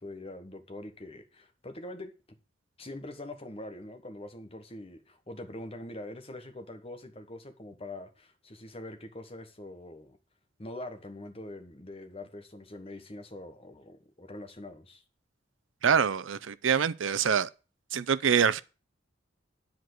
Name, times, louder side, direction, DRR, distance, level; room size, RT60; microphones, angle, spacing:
voice 1, 0.0-2.1 2.8-10.2 10.6-15.0, left 1 dB, 30° left, 1.3 m, -43 dB
voice 2, 15.8-17.5 17.9-18.6, right 7 dB, 80° right, 0.5 m, -25 dB
10.5 x 4.6 x 7.8 m
head